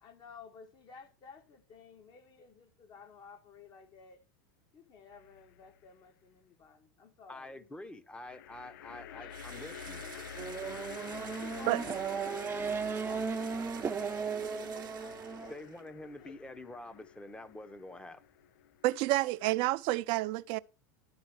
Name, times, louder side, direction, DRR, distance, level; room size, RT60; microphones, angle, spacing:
voice 1, 0.0-4.2 4.7-7.7 8.9-9.4 9.7-10.3 11.2-13.5 14.0-15.6 16.0-16.4 19.2-19.3, left 5 dB, 45° left, 2.0 m, -54 dB
sound 1, 5.1-5.8 8.2-19.6, left 10 dB, 70° left, 0.5 m, -49 dB
voice 2, 7.3-10.0 15.5-18.2, left 2 dB, 10° left, 1.0 m, -47 dB
Engine / Drill, 9.3-15.9, right 11 dB, 85° right, 0.8 m, -51 dB
Race car auto racing / Accelerating revving vroom, 10.4-15.5, right 5 dB, 20° right, 0.7 m, -36 dB
voice 3, 18.8-20.6, right 18 dB, 55° right, 0.6 m, -29 dB
11.5 x 4.0 x 6.3 m
hypercardioid pair, 100°, 11 cm